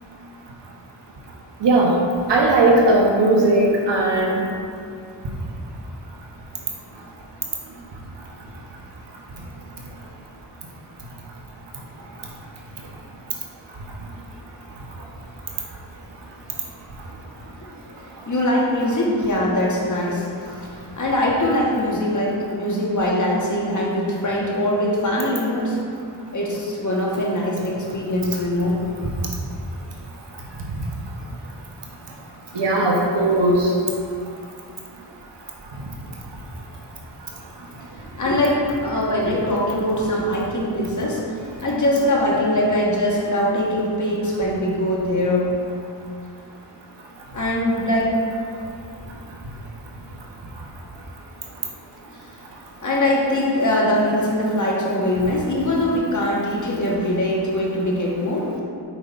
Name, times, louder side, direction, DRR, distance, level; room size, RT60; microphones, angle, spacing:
voice 1, 1.6-1.9 2.3-4.4 32.5-33.7, right 2 dB, 70° right, -2 dB, 1.1 m, -17 dB
voice 2, 18.2-20.3 20.8-25.8 26.3-28.8 38.0-45.5 47.3-48.2 52.8-58.5, left 1 dB, 40° left, -3 dB, 1.5 m, -22 dB
7.6 x 5.2 x 2.6 m, 2.3 s
cardioid pair, 45°, 44 cm